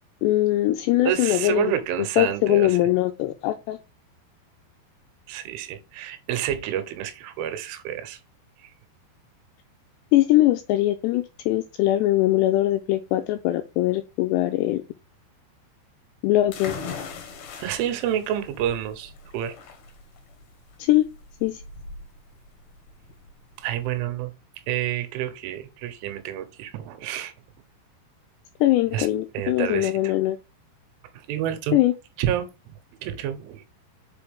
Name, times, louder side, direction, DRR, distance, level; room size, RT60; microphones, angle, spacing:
voice 1, 0.2-1.7 2.2-3.8 10.1-14.8 16.2-16.7 20.8-21.1 21.4-21.6 28.6-30.4 31.7-31.9, left 15 dB, 85° left, 2.4 m, -21 dB
voice 2, 1.0-2.8 5.3-8.2 8.6-8.7 17.6-19.6 23.6-24.3 24.7-27.3 28.9-29.1 29.3-30.1 31.1-31.8 32.2-32.7 33.0-33.7, right 11 dB, 85° right, 3.4 m, -29 dB
sound 1, 16.5-24.0, left 5 dB, 70° left, 2.1 m, -40 dB
5.9 x 5.3 x 3.5 m
omnidirectional pair, 5.4 m